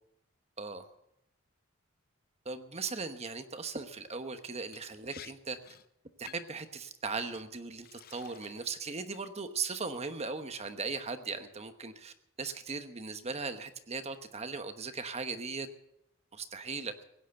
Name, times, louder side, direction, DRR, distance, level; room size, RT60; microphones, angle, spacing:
voice 1, 2.4-5.6 6.2-15.7 16.3-17.0, right 4 dB, 30° right, 9 dB, 1.1 m, -38 dB
Liquid, 4.7-4.8 5.1-5.3 5.6-5.9 6.3-6.6 7.3-7.4 7.8-8.7 9.1-9.6, left 9 dB, 45° left, 0.7 m, -52 dB
17.0 x 9.4 x 7.7 m, 0.83 s
head